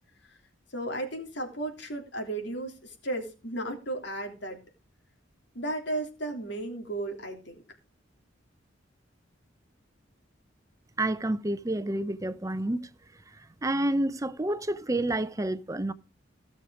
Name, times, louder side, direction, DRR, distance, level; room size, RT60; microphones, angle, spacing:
voice 1, 0.7-4.6 5.5-7.6, right 1 dB, 65° left, 3.4 m, -34 dB
voice 2, 11.0-12.9 13.6-15.9, right 1 dB, 15° right, 0.6 m, -29 dB
16.5 x 6.6 x 4.9 m
head